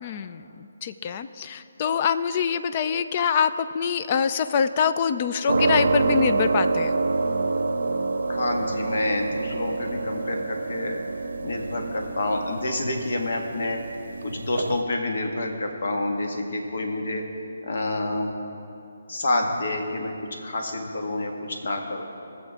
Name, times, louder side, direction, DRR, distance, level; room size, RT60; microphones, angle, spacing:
voice 1, 0.0-6.9, left 7 dB, 35° left, 12 dB, 0.4 m, -25 dB
sound 1, 5.5-14.8, right 3 dB, 75° right, 0.7 m, -27 dB
voice 2, 8.3-11.0 11.4-13.8 14.2-17.2 17.6-18.3 19.1-22.0, left 2 dB, 65° left, 3 dB, 1.6 m, -28 dB
19.5 x 7.3 x 3.6 m, 2.7 s
hypercardioid pair, 155°, 0 cm